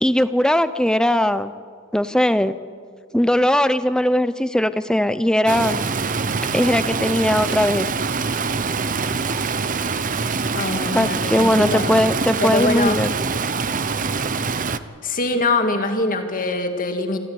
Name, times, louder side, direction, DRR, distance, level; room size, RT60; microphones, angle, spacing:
voice 1, 0.0-1.5 1.9-2.6 3.1-5.8 6.5-7.9 10.9-13.1, equal, 5° left, 13 dB, 0.6 m, -19 dB
Stream, 5.5-14.8, right 4 dB, 35° right, 0.8 m, -24 dB
voice 2, 10.5-12.0 12.4-13.0 15.0-17.2, left 2 dB, 40° left, 5 dB, 2.2 m, -23 dB
27.5 x 13.5 x 9.6 m, 2.1 s
head